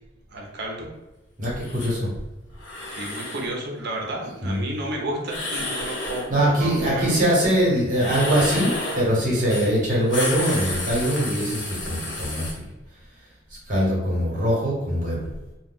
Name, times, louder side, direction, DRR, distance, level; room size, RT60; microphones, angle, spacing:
voice 1, 0.3-0.9 2.9-7.2, right 1 dB, 60° right, 0 dB, 0.6 m, -32 dB
voice 2, 1.4-2.1 4.4-4.6 6.3-12.6 13.5-15.3, equal, 45° right, -5 dB, 1.1 m, -22 dB
sound 1, 1.6-1.9 2.6-3.5 5.2-6.3 7.9-9.1 9.5-9.7 10.0-12.5, left 2 dB, 80° left, 0.9 m, -31 dB
2.3 x 2.2 x 3.5 m, 1.0 s
head